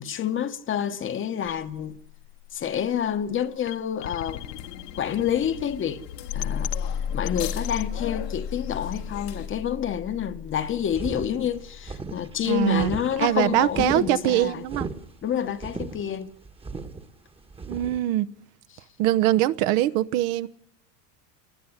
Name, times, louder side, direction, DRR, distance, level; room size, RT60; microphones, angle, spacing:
voice 1, 0.0-2.0 2.5-4.4 5.0-6.0 6.3-6.7 7.1-14.6 15.2-16.3, left 9 dB, 25° left, 1.2 m, -28 dB
sound 1, 1.4-13.5, left 8 dB, 50° left, 1.1 m, -35 dB
sound 2, 4.2-9.5, left 10 dB, 90° left, 3.1 m, -40 dB
sound 3, 10.9-18.0, right 4 dB, 10° right, 1.4 m, -37 dB
voice 2, 12.5-12.9 13.2-14.9 17.7-18.3 19.0-20.5, right 14 dB, 50° right, 1.0 m, -22 dB
27.0 x 20.0 x 9.8 m
supercardioid pair, 135°, 47 cm